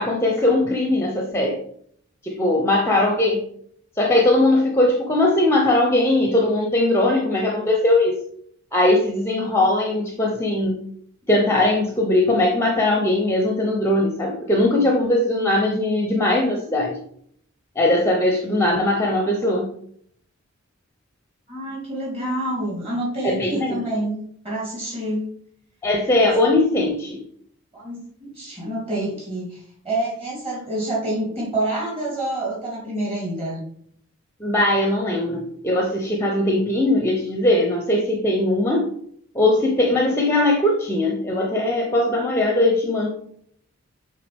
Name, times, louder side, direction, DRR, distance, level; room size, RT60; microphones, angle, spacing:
voice 1, 0.0-1.6 2.2-3.4 4.0-8.2 8.7-10.8 11.3-17.0 17.8-19.7 23.2-23.7 25.8-27.2 34.4-38.9 39.3-43.1, left 1 dB, 10° left, 1 dB, 0.6 m, -20 dB
voice 2, 21.5-24.2 24.4-25.3 27.7-33.6, right 1 dB, 25° right, -5 dB, 2.8 m, -27 dB
8.3 x 3.5 x 3.5 m, 0.64 s
head